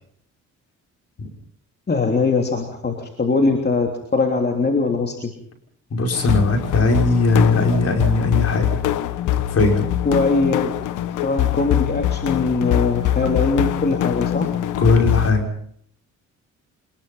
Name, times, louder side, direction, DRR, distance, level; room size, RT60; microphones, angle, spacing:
voice 1, 1.9-5.3 10.0-10.7 11.2-14.5, left 3 dB, 35° left, 3 dB, 3.2 m, -21 dB
voice 2, 5.9-8.9 9.3-9.9 14.8-15.5, left 3 dB, 55° left, 3 dB, 6.0 m, -19 dB
sound 1, 6.1-15.3, left 12 dB, 85° left, 1.2 m, -23 dB
26.0 x 20.5 x 5.7 m, 0.64 s
cardioid pair, 90°, 30 cm